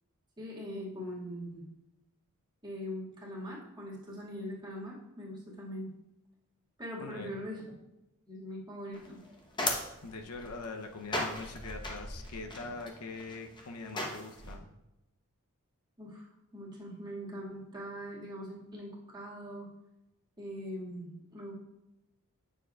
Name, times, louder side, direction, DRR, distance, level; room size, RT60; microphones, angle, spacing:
voice 1, 0.4-1.6 2.6-5.9 6.8-7.6 8.3-9.2 16.0-16.3 16.5-19.7 20.4-21.5, equal, 20° right, -6 dB, 2.0 m, -41 dB
voice 2, 7.0-7.4 10.0-14.7, left 3 dB, 90° left, 4 dB, 0.8 m, -43 dB
sound 1, 8.9-14.6, left 1 dB, 20° left, 1.0 m, -38 dB
9.2 x 6.6 x 2.4 m, 0.94 s
head